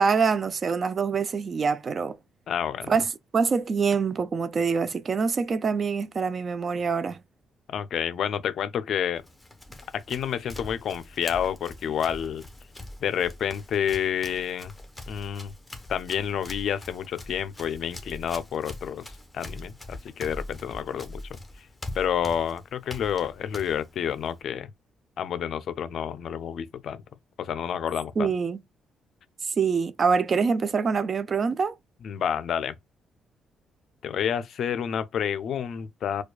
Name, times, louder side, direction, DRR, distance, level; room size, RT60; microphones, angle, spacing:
voice 1, 0.0-2.2 2.9-3.0 3.3-7.2 28.2-28.6 29.6-31.7, right 5 dB, 45° right, 0.3 m, -25 dB
voice 2, 2.5-2.9 7.7-9.2 9.9-12.5 13.0-14.7 15.1-15.5 15.9-19.0 19.3-21.2 21.6-21.7 21.9-24.7 25.2-27.0 27.4-28.3 32.0-32.7 34.0-36.2, left 8 dB, 65° left, 0.4 m, -29 dB
Run, 9.2-24.4, left 1 dB, 10° left, 0.9 m, -43 dB
4.6 x 2.3 x 2.2 m
cardioid pair, 90°, 0 cm